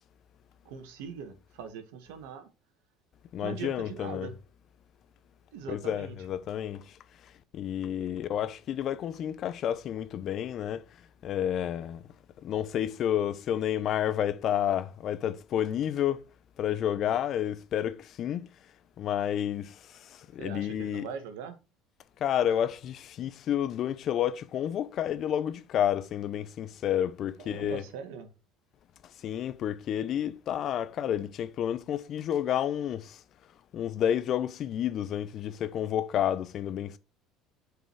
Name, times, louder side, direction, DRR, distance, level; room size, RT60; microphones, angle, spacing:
voice 1, 0.6-2.5 3.4-4.3 5.5-6.1 20.4-21.6 27.4-28.3, right 7 dB, 75° right, 1.7 m, -41 dB
voice 2, 3.3-4.3 5.7-7.0 7.5-10.8 11.2-12.0 12.4-16.2 16.6-18.5 19.0-21.1 22.2-27.8 29.2-33.2 33.7-37.0, left 10 dB, 55° left, 0.8 m, -30 dB
7.8 x 5.1 x 4.7 m
hypercardioid pair, 70°, 0 cm